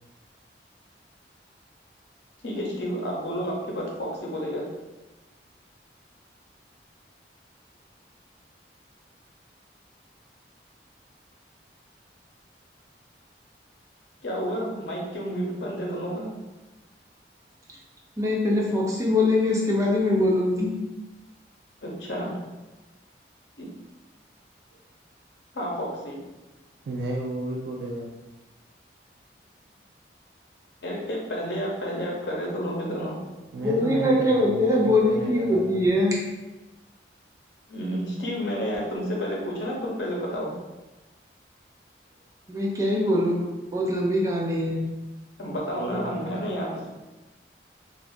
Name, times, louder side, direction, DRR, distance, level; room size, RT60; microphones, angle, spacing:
voice 1, 2.4-4.7 14.2-16.3 21.8-22.4 23.6-23.7 25.5-26.2 30.8-33.2 37.7-40.6 45.4-46.9, equal, 80° left, -2 dB, 0.7 m, -30 dB
voice 2, 18.2-20.8 33.6-36.2 42.5-43.4 43.7-44.8, left 1 dB, 20° right, -3 dB, 0.5 m, -22 dB
voice 3, 26.9-28.1 33.5-35.8 45.8-46.4, right 2 dB, 70° right, -2 dB, 0.3 m, -33 dB
2.6 x 2.4 x 3.5 m, 1.1 s
head